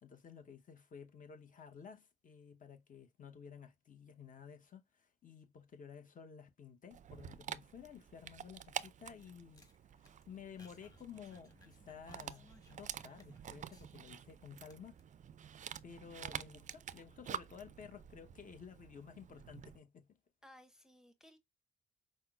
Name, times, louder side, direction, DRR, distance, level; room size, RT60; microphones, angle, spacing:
voice 1, 0.0-9.7 10.0-15.0 15.8-20.2, left 7 dB, 40° left, 0.8 m, -54 dB
Dog, 6.9-19.8, right 9 dB, 40° right, 0.4 m, -49 dB
sound 1, 8.6-14.3 14.6-15.0, left 2 dB, 20° left, 1.2 m, -66 dB
voice 2, 20.4-21.4, left 1 dB, 5° right, 0.7 m, -60 dB
5.4 x 2.0 x 2.3 m
supercardioid pair, 65°, 20 cm